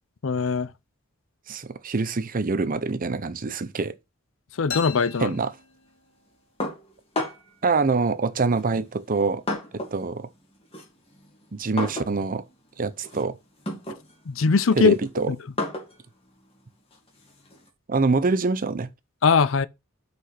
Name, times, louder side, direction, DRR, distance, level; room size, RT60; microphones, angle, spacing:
voice 1, 0.2-0.7 4.6-5.3 14.3-14.9 15.3-15.4 19.2-19.7, left 5 dB, 70° left, 0.6 m, -20 dB
voice 2, 1.5-3.9 5.2-5.5 7.6-9.4 9.7-10.3 11.5-12.4 12.8-13.4 14.8-15.3 17.9-18.9, right 4 dB, 45° right, 0.7 m, -25 dB
sound 1, 4.7-6.4, left 6 dB, 90° left, 1.4 m, -37 dB
sound 2, 6.6-7.6 8.5-10.1 10.4-17.7, left 2 dB, 30° left, 2.8 m, -35 dB
6.0 x 5.7 x 5.8 m
head